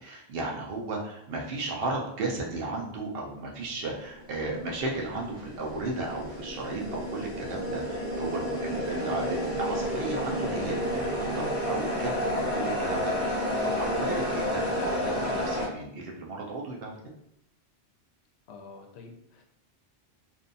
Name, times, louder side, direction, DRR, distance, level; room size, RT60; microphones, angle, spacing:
voice 1, 0.0-16.9, right 2 dB, 65° right, -1 dB, 0.7 m, -35 dB
sound 1, 4.1-15.7, equal, 35° left, 0.7 m, -31 dB
voice 2, 18.5-19.4, left 4 dB, 75° left, 1 dB, 0.8 m, -47 dB
2.6 x 2.3 x 2.5 m, 0.74 s
omnidirectional pair, 1.1 m